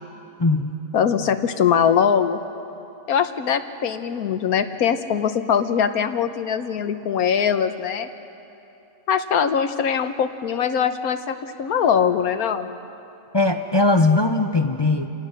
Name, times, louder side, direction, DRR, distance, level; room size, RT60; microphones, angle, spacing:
voice 1, 0.4-0.8 13.3-15.1, left 2 dB, 25° left, 6 dB, 0.6 m, -19 dB
voice 2, 0.9-2.4 3.1-8.1 9.1-12.7, left 7 dB, 85° left, 9 dB, 1.4 m, -22 dB
29.0 x 18.5 x 6.5 m, 2.9 s
omnidirectional pair, 1.5 m